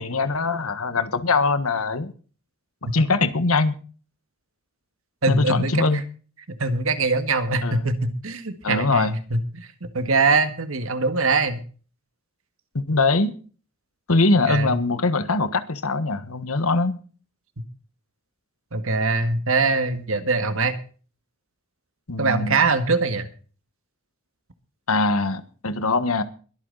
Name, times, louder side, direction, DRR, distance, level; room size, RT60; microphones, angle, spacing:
voice 1, 0.0-2.1 2.9-3.7 5.3-6.0 7.6-7.8 8.6-9.1 12.7-13.3 14.1-17.0 22.1-22.6 24.9-26.2, left 3 dB, 80° left, 12 dB, 1.5 m, -22 dB
voice 2, 5.2-5.8 6.6-11.6 14.5-14.8 18.7-20.8 22.2-23.3, right 3 dB, 70° right, 9 dB, 1.9 m, -23 dB
22.0 x 9.0 x 4.1 m, 0.39 s
head